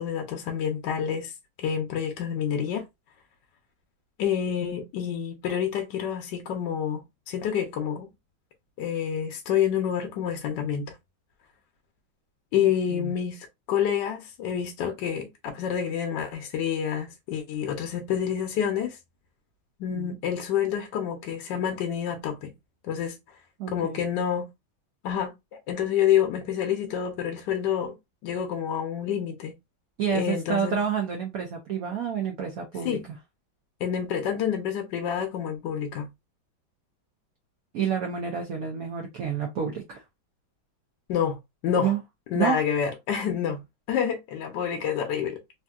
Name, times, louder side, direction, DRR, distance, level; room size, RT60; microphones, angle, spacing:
voice 1, 0.0-1.3 1.6-2.8 4.2-8.1 8.8-10.9 12.5-19.0 19.8-22.5 22.8-23.2 23.7-24.5 25.0-25.3 25.7-28.0 28.2-29.6 30.1-30.8 32.8-33.0 33.8-36.1 41.1-41.4 41.6-41.9 42.3-43.6 43.9-45.4, left 8 dB, 70° left, 1.2 m, -28 dB
voice 2, 12.6-13.1 19.9-20.1 23.6-24.0 30.0-33.0 37.7-40.0 41.8-42.0 42.3-42.6, right 7 dB, 75° right, 0.8 m, -29 dB
3.5 x 2.6 x 2.3 m
omnidirectional pair, 2.2 m